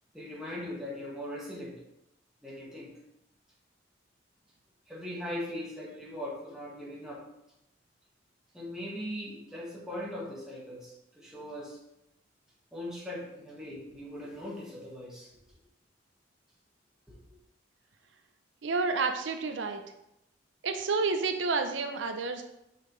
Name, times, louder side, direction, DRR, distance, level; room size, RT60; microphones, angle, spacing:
voice 1, 0.1-1.8 2.4-2.9 4.9-7.2 8.5-11.8 12.7-15.3 17.1-17.2, left 1 dB, 5° right, -6 dB, 1.5 m, -40 dB
voice 2, 18.6-19.8 20.6-22.4, right 4 dB, 80° right, 6 dB, 0.5 m, -30 dB
5.7 x 5.5 x 3.1 m, 0.85 s
head